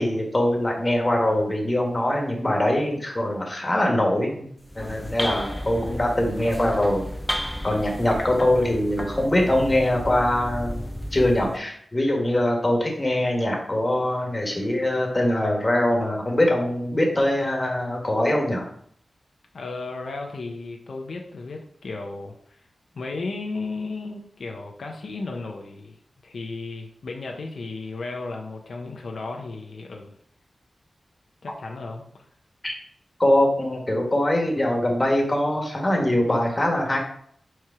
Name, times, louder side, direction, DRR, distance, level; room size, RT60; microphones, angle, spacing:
voice 1, 0.0-4.5 4.7-7.1 7.6-10.8 11.1-18.7 32.6-32.7 33.2-37.0, left 1 dB, 25° left, 1 dB, 1.5 m, -23 dB
sound 1, 4.6-11.6, equal, 10° left, 0.5 m, -32 dB
voice 2, 19.5-22.6 22.9-26.0 26.2-30.2 31.4-32.2, left 3 dB, 80° left, 2 dB, 0.7 m, -34 dB
4.8 x 4.4 x 4.8 m, 0.65 s
wide cardioid pair, 110°, 0 cm